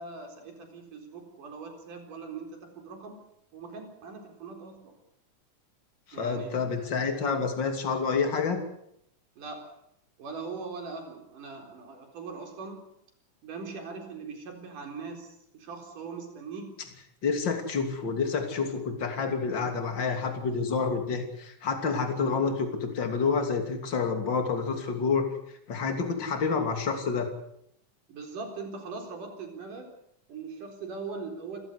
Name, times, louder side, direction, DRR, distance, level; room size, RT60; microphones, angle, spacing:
voice 1, 0.0-3.2 3.5-5.0 6.1-7.1 9.4-9.7 10.2-12.9 13.4-16.8 28.1-29.9 30.3-31.6, right 4 dB, 85° right, 4 dB, 5.7 m, -41 dB
voice 2, 6.1-8.6 17.2-25.3 25.7-27.3, left 5 dB, 35° left, 5 dB, 3.4 m, -28 dB
28.5 x 15.0 x 8.2 m, 0.75 s
omnidirectional pair, 3.6 m